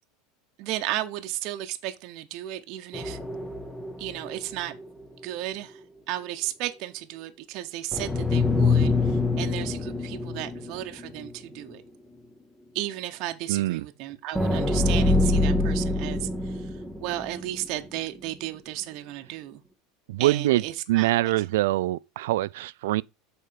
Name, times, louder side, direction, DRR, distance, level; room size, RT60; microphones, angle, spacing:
voice 1, 0.6-3.2 4.0-4.8 5.2-5.8 6.1-11.8 12.7-16.7 17.0-19.6 20.2-21.4, right 14 dB, 50° right, 0.8 m, -34 dB
sound 1, 2.9-5.0 5.3-5.4 7.9-11.3 11.7-11.8 14.3-17.7, left 2 dB, 5° left, 0.8 m, -25 dB
voice 2, 13.5-13.9 20.1-20.6 20.9-23.0, right 16 dB, 85° right, 0.3 m, -24 dB
6.6 x 4.4 x 5.0 m
supercardioid pair, 155°, 0 cm